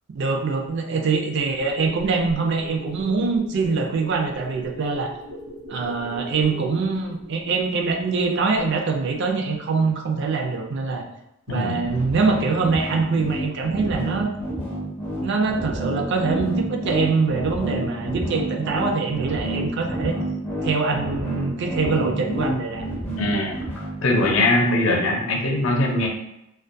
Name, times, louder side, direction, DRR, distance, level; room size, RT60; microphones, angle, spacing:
voice 1, 0.1-5.1 5.7-11.0 11.5-14.3 15.2-20.2 20.6-22.9, right 4 dB, 60° right, 2 dB, 0.4 m, -24 dB
sound 1, 1.4-8.3 8.6-8.7, right 1 dB, 80° right, 0.9 m, -40 dB
sound 2, 11.8-24.4, right 1 dB, 10° left, 0.4 m, -29 dB
voice 2, 23.2-23.5 24.0-26.1, left 2 dB, 80° left, 0 dB, 0.6 m, -21 dB
2.2 x 2.2 x 2.6 m, 0.86 s
head